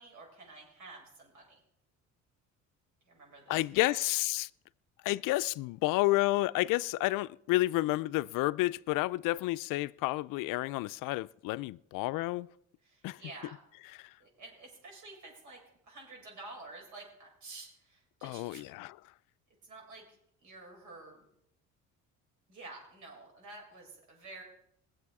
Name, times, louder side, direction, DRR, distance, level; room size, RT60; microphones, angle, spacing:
voice 1, 0.0-1.6 3.0-4.0 12.8-13.5 14.2-18.6 19.6-20.0 20.4-21.3 22.5-24.4, right 3 dB, 65° right, 6.7 m, -50 dB
voice 2, 3.5-4.5 5.0-12.5 13.0-13.2 14.0-14.1 18.2-19.0, left 19 dB, 75° left, 0.5 m, -30 dB
22.0 x 7.8 x 4.8 m
cardioid pair, 115°, 32 cm